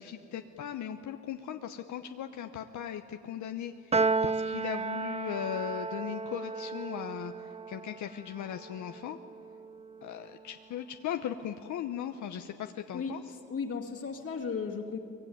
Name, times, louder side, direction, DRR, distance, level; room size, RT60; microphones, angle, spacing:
voice 1, 0.0-9.2 10.0-13.3, left 9 dB, 70° left, 6 dB, 1.0 m, -38 dB
Piano, 3.9-10.4, right 4 dB, 20° right, 0.6 m, -34 dB
voice 2, 13.5-15.0, left 5 dB, 50° left, -2 dB, 2.4 m, -35 dB
23.5 x 21.5 x 9.4 m, 2.7 s
cardioid pair, 90°, 30 cm